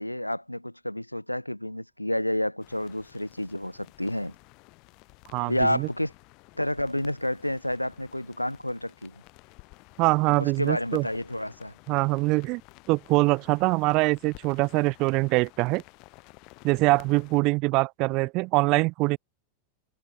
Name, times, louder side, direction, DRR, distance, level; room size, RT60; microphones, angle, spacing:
voice 1, 0.0-4.3 5.5-6.1 6.5-9.1 10.4-11.7, left 1 dB, 90° left, 1.3 m, -30 dB
sound 1, 2.6-17.4, left 28 dB, 45° left, 4.5 m, -53 dB
voice 2, 5.3-5.9 10.0-11.0 11.9-12.6 12.9-15.8 16.6-19.2, right 24 dB, 40° right, 0.7 m, -23 dB
figure-of-eight pair, 90°, 0 cm